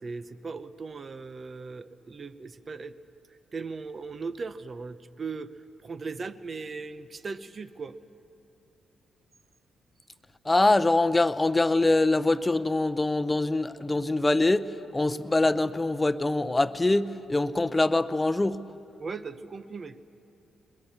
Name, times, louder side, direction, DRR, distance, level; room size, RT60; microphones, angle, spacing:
voice 1, 0.0-2.9 3.5-5.5 5.8-7.9 19.0-20.0, right 4 dB, 45° right, 0.8 m, -38 dB
voice 2, 10.4-14.7 14.9-18.6, left 2 dB, 20° left, 0.7 m, -24 dB
22.0 x 20.5 x 7.2 m
hypercardioid pair, 45°, 0 cm